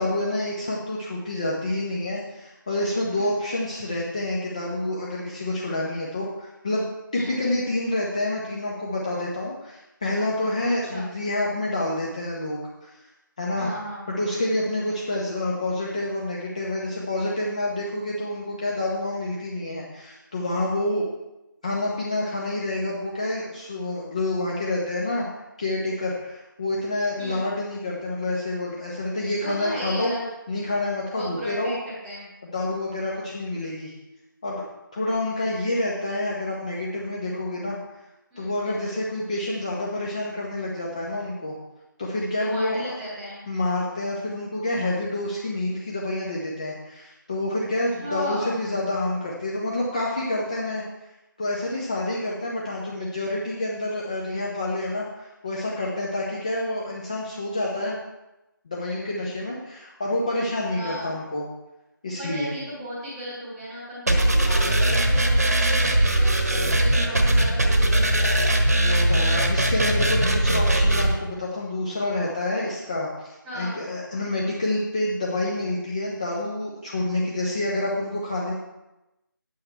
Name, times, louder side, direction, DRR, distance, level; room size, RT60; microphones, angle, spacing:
voice 1, 0.0-6.9 7.1-12.9 13.4-13.7 14.1-21.1 21.6-25.3 25.6-30.1 30.5-31.8 32.4-33.9 34.4-34.6 34.9-37.8 38.4-41.5 42.0-42.8 43.5-50.8 51.4-55.0 55.4-58.0 58.6-61.4 62.0-62.5 68.7-78.5, left 1 dB, 20° left, -4 dB, 0.9 m, -28 dB
voice 2, 10.7-11.1 13.5-14.1 27.2-27.4 29.4-30.3 31.1-32.3 38.3-38.8 42.4-43.4 48.0-48.6 60.7-61.2 62.2-68.4 73.4-73.8, equal, 5° right, -7 dB, 1.5 m, -35 dB
sound 1, 64.1-71.1, right 1 dB, 45° right, 1.4 m, -20 dB
8.8 x 8.7 x 4.5 m, 0.96 s
figure-of-eight pair, 165°, 12 cm